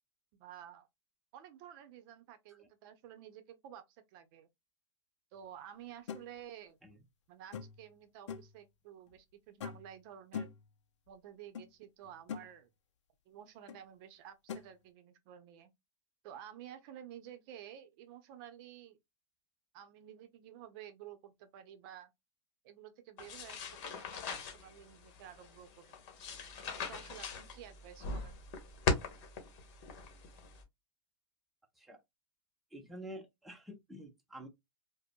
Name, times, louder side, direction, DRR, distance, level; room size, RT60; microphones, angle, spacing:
voice 1, 0.3-0.9 1.3-4.5 5.3-6.8 7.3-10.5 11.1-12.7 13.3-15.7 16.2-19.0 19.7-22.1 22.6-26.0 26.6-28.4, right 10 dB, 50° right, 0.7 m, -52 dB
sound 1, 6.1-6.2 7.5-7.9 8.3-8.6 9.6-9.9 10.3-10.7 11.5-11.7 12.0-12.5 13.7-13.8 14.5-14.7, left 7 dB, 90° left, 0.4 m, -42 dB
sound 2, 23.2-30.6, left 4 dB, 50° left, 1.2 m, -40 dB
voice 2, 32.7-34.5, right 1 dB, ahead, 0.7 m, -48 dB
4.9 x 2.1 x 2.2 m
hypercardioid pair, 120°, 15 cm